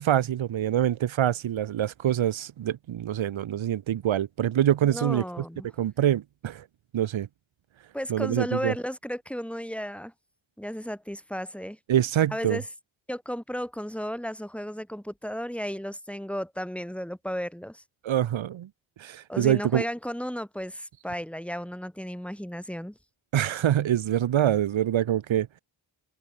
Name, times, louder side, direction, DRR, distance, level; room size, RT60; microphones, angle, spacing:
voice 1, 0.0-5.2 5.8-6.6 6.9-7.3 8.1-8.7 11.9-12.6 18.0-18.7 19.0-19.8 23.3-25.6, right 11 dB, 90° right, 1.2 m, -25 dB
voice 2, 4.8-5.7 7.9-10.1 10.6-11.8 12.3-12.6 13.1-17.8 19.3-23.0, equal, 5° left, 5.6 m, -34 dB
cardioid pair, 75°, 46 cm